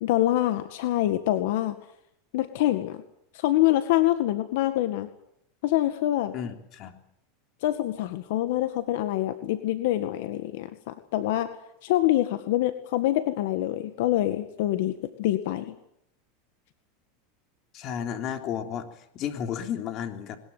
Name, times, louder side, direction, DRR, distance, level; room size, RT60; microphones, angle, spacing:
voice 1, 0.0-1.8 2.3-3.0 3.3-5.1 5.6-6.3 7.6-11.5 11.8-15.7, left 14 dB, 70° left, 9 dB, 1.9 m, -25 dB
voice 2, 6.3-6.9 17.7-20.4, left 8 dB, 40° left, 6 dB, 3.4 m, -33 dB
21.5 x 20.0 x 9.4 m, 0.75 s
supercardioid pair, 135°, 0 cm